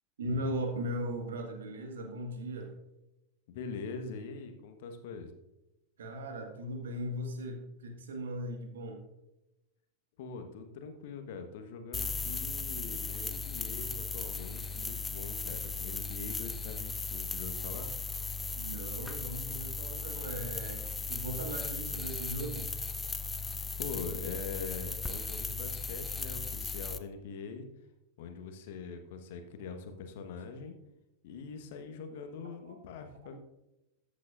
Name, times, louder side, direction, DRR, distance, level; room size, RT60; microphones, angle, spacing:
voice 1, 0.2-2.7 6.0-9.0 18.5-22.7 32.6-32.8, equal, 65° right, 4 dB, 1.7 m, -38 dB
voice 2, 3.5-5.3 10.2-17.9 23.3-27.7 28.2-30.7 31.2-33.4, left 5 dB, 50° left, 6 dB, 1.3 m, -43 dB
sound 1, 11.9-27.0, left 4 dB, 10° left, 0.6 m, -37 dB
13.5 x 8.4 x 2.5 m, 0.93 s
figure-of-eight pair, 90°, 0 cm